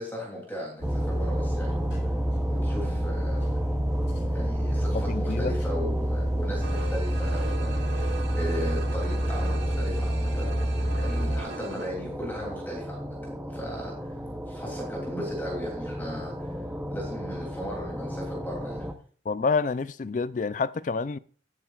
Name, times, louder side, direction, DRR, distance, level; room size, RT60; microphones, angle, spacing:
voice 1, 0.0-2.1 2.5-3.6 4.3-8.1 8.4-10.5 11.0-14.1 14.5-16.6 16.9-18.9, equal, 10° left, 2.9 m, -37 dB
sound 1, 0.8-11.4, right 1 dB, 65° left, 2.5 m, -27 dB
sound 2, 0.8-18.9, equal, 5° right, 0.7 m, -36 dB
voice 2, 4.9-5.5 19.3-21.2, left 4 dB, 40° left, 0.4 m, -28 dB
sound 3, 6.6-11.9, right 2 dB, 70° right, 1.6 m, -40 dB
20.0 x 7.2 x 2.4 m
head